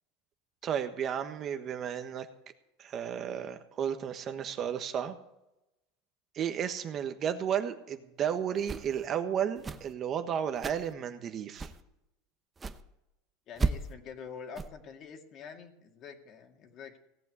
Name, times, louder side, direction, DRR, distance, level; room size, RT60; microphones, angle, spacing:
voice 1, 0.6-2.3 2.8-5.2 6.3-11.7, right 8 dB, 35° right, 8 dB, 1.3 m, -33 dB
sound 1, 8.6-9.1 9.6-9.9 10.6-10.9 11.6-11.8 12.6-12.8 13.6-13.9 14.5-14.7, right 4 dB, 15° right, 0.9 m, -34 dB
voice 2, 13.5-17.0, left 6 dB, 40° left, 5 dB, 2.2 m, -46 dB
17.5 x 8.4 x 7.9 m, 0.90 s
supercardioid pair, 135°, 0 cm